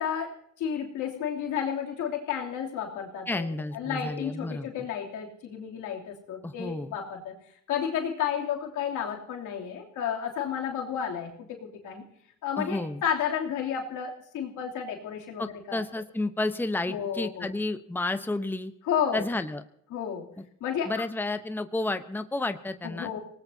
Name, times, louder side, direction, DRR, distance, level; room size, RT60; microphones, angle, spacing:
voice 1, 0.0-7.3 7.7-12.0 12.4-15.8 16.9-17.5 18.9-19.2 19.9-20.3 20.6-20.9 22.8-23.2, left 8 dB, 85° left, 0 dB, 3.1 m, -32 dB
voice 2, 3.3-4.7 6.4-6.9 12.6-13.0 15.4-18.7 19.1-19.6 20.4-20.5 20.9-23.2, left 2 dB, 5° left, 9 dB, 0.9 m, -31 dB
25.5 x 19.0 x 2.8 m, 0.70 s
cardioid pair, 90°, 30 cm